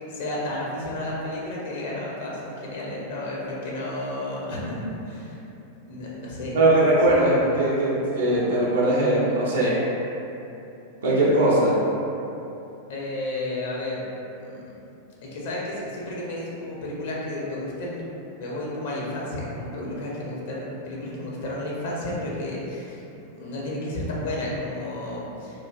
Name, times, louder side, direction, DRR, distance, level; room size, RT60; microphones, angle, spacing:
voice 1, 0.1-5.4 5.9-6.6 7.2-7.3 12.9-14.0 14.4-14.8 15.2-18.0 18.4-23.0 23.3-25.6, left 1 dB, 55° left, -5 dB, 0.5 m, -32 dB
voice 2, 6.5-9.8 11.0-11.7, right 1 dB, 70° right, -7 dB, 0.5 m, -20 dB
3.1 x 2.3 x 2.3 m, 2.9 s
figure-of-eight pair, 90°, 0 cm